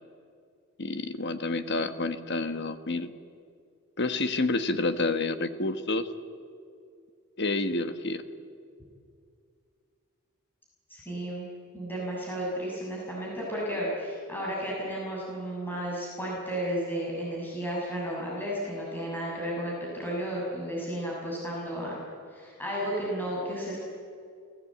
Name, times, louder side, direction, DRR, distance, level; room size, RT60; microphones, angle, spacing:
voice 1, 0.8-3.1 4.0-6.1 7.4-8.2, left 2 dB, 50° left, 9 dB, 1.3 m, -29 dB
voice 2, 10.9-11.5 11.7-22.0 22.3-23.8, equal, 10° left, -4 dB, 6.5 m, -33 dB
29.5 x 17.5 x 8.6 m, 2.3 s
head